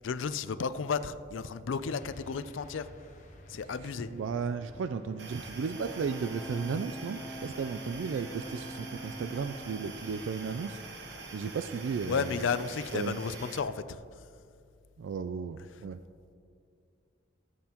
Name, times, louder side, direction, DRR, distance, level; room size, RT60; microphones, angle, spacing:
voice 1, 0.0-2.9 3.5-4.1 12.1-14.0, left 5 dB, 80° left, 14 dB, 0.4 m, -33 dB
sound 1, 1.8-11.7, equal, 40° left, 1.0 m, -54 dB
voice 2, 3.8-10.8 11.3-12.6 12.9-13.2 15.0-16.0, right 5 dB, 75° right, 10 dB, 0.3 m, -35 dB
sound 2, 5.2-13.6, right 3 dB, 60° right, 1.0 m, -45 dB
Brass instrument, 5.7-10.0, equal, 10° right, 2.6 m, -45 dB
15.0 x 7.5 x 2.9 m, 2.3 s
head